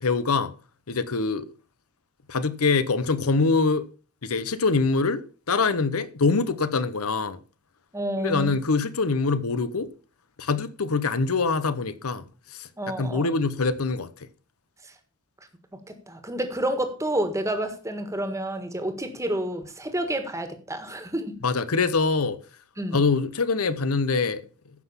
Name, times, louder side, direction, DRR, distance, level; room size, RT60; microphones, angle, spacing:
voice 1, 0.0-0.5 0.9-1.4 2.3-3.9 4.2-5.2 5.5-7.4 8.2-9.9 10.4-12.2 13.0-14.1 21.4-22.4 22.9-24.4, left 4 dB, 80° left, 0.9 m, -24 dB
voice 2, 7.9-8.6 12.8-13.3 14.8-14.9 15.9-21.3 22.8-23.0, right 1 dB, 15° right, 1.6 m, -29 dB
15.0 x 6.0 x 5.6 m
head